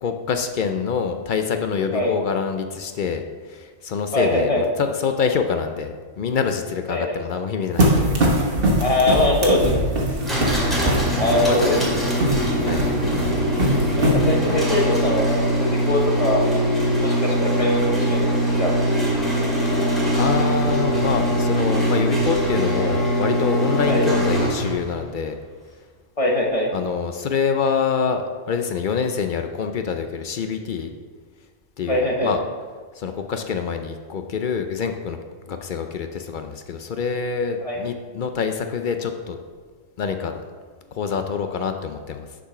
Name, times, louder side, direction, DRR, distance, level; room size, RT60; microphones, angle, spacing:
voice 1, 0.0-8.3 11.1-11.7 12.6-13.2 20.2-25.4 26.7-30.9 31.8-32.4 32.9-35.2 35.5-39.4 40.0-40.4 40.9-42.4, left 6 dB, 65° left, 6 dB, 0.5 m, -26 dB
voice 2, 4.1-4.7 6.9-7.1 8.8-9.8 11.1-11.8 14.0-16.5 17.0-18.7 23.8-24.1 26.2-26.7 31.9-32.3 37.6-37.8, left 1 dB, 30° left, 0 dB, 0.8 m, -22 dB
sound 1, 7.8-14.6, right 1 dB, 45° right, 1.4 m, -22 dB
sound 2, 10.2-24.9, right 1 dB, ahead, 2.0 m, -22 dB
6.8 x 5.1 x 5.8 m, 1.5 s
omnidirectional pair, 1.3 m